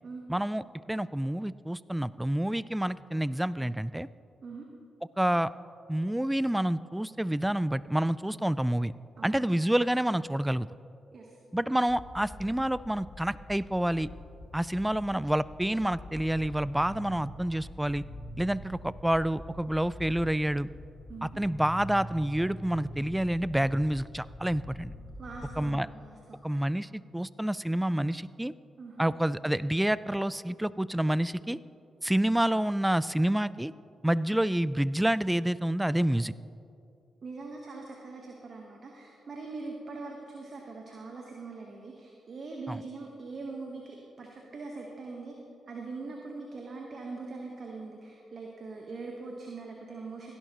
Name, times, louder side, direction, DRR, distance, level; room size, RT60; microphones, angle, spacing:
voice 1, 0.3-4.1 5.2-5.5 5.9-8.9 9.2-10.7 11.5-14.1 14.5-18.0 18.4-20.7 21.2-24.9 25.6-25.9 26.4-28.5 29.0-31.6 32.0-33.7 34.0-36.3 42.7-42.8, right 1 dB, 10° right, 18 dB, 0.3 m, -28 dB
sound 1, 11.9-25.5, left 1 dB, 45° left, 1.6 m, -45 dB
voice 2, 21.1-21.4 25.2-26.6 28.8-29.0 37.2-45.4 45.7-50.3, right 3 dB, 55° right, 0 dB, 1.3 m, -42 dB
17.0 x 11.0 x 3.0 m, 2.6 s
hypercardioid pair, 45°, 0 cm